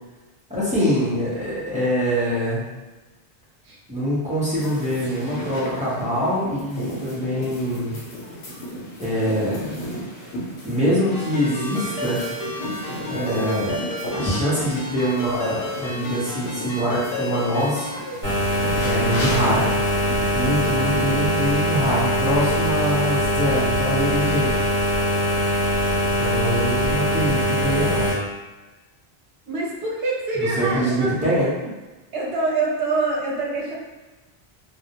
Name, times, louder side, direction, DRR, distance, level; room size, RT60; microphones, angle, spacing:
voice 1, 0.5-2.7 3.9-8.0 9.0-9.7 10.6-12.2 13.1-13.8 14.1-17.9 18.8-19.7 20.3-24.6 26.2-28.0 30.4-31.5, equal, 10° right, -10 dB, 0.6 m, -24 dB
sound 1, 4.4-21.9, equal, 80° left, 0.9 m, -35 dB
Ringtone, 11.1-18.0, left 1 dB, 50° left, 0.5 m, -32 dB
sound 2, 18.2-28.1, equal, 50° right, 1.0 m, -22 dB
voice 2, 29.5-31.7 32.1-33.7, right 3 dB, 70° right, -3 dB, 0.8 m, -25 dB
2.3 x 2.0 x 2.8 m, 1.2 s
omnidirectional pair, 1.1 m